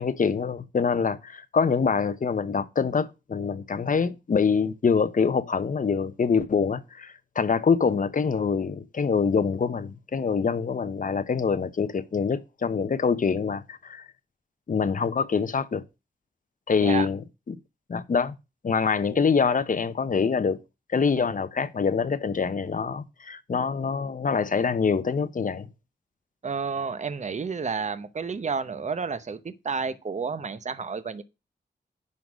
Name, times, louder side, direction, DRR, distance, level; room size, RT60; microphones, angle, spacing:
voice 1, 0.0-14.1 14.7-15.8 16.7-17.6 17.9-18.3 18.6-20.6 20.9-25.7, left 5 dB, 45° left, 0.9 m, -25 dB
voice 2, 26.4-31.2, right 5 dB, 40° right, 0.8 m, -31 dB
10.5 x 3.9 x 6.2 m
wide cardioid pair, 100°, 18 cm